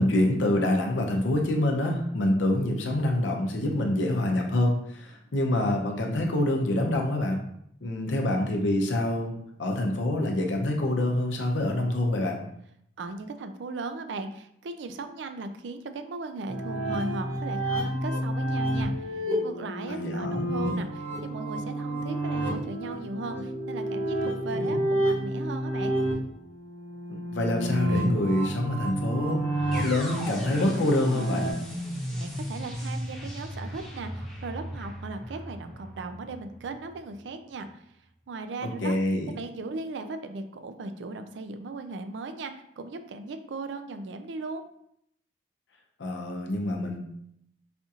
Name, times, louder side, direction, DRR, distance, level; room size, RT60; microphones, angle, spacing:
voice 1, 0.0-7.4 7.8-12.4 19.9-20.5 24.5-24.8 27.3-29.4 29.8-31.5 38.6-39.3 46.0-47.0, left 1 dB, 85° left, 2 dB, 0.6 m, -26 dB
voice 2, 13.0-26.0 32.1-37.8 38.3-38.9 39.3-44.6, right 3 dB, 75° right, 8 dB, 0.4 m, -37 dB
sound 1, 16.5-31.5, right 1 dB, 35° left, 0.9 m, -30 dB
sound 2, 29.7-37.7, equal, ahead, 0.7 m, -37 dB
4.2 x 2.4 x 2.8 m, 0.72 s
head